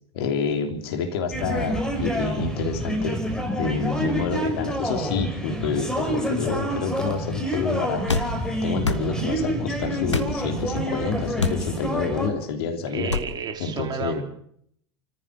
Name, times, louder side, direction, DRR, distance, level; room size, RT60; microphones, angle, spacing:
voice 1, 0.1-3.2 3.6-13.1 13.6-14.2, left 5 dB, 60° left, 3.3 m, -28 dB
sound 1, 1.3-12.3, right 1 dB, 5° left, 5.7 m, -28 dB
voice 2, 4.1-4.5 12.9-14.2, right 6 dB, 30° right, 4.3 m, -32 dB
sound 2, 8.1-8.3 8.8-9.1 10.1-10.3 11.4-11.6 13.1-13.3, left 4 dB, 85° left, 1.5 m, -25 dB
29.0 x 14.5 x 6.6 m
figure-of-eight pair, 75°, 15 cm